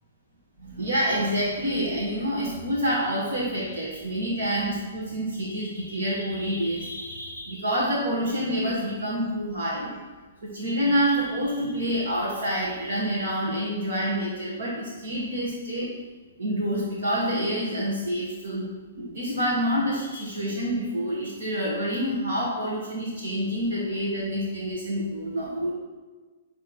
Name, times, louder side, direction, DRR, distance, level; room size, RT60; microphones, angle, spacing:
voice 1, 0.6-9.9 10.4-15.9 16.4-18.7 19.0-25.7, equal, 75° right, -8 dB, 2.0 m, -27 dB
10.5 x 3.7 x 4.6 m, 1.4 s
hypercardioid pair, 135°, 0 cm